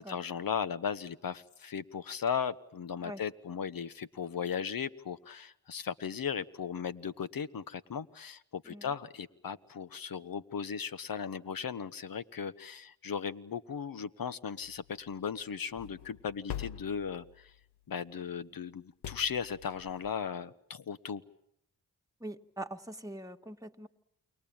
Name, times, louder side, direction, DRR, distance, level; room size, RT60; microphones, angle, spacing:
voice 1, 0.0-17.5 17.9-21.2, left 7 dB, 60° left, 15 dB, 1.3 m, -37 dB
sound 1, 14.6-17.8 19.0-20.2, left 11 dB, 85° left, 1.0 m, -45 dB
voice 2, 22.2-23.9, right 1 dB, 10° right, 3 dB, 1.9 m, -43 dB
29.0 x 22.0 x 8.9 m, 0.74 s
cardioid pair, 50°, 38 cm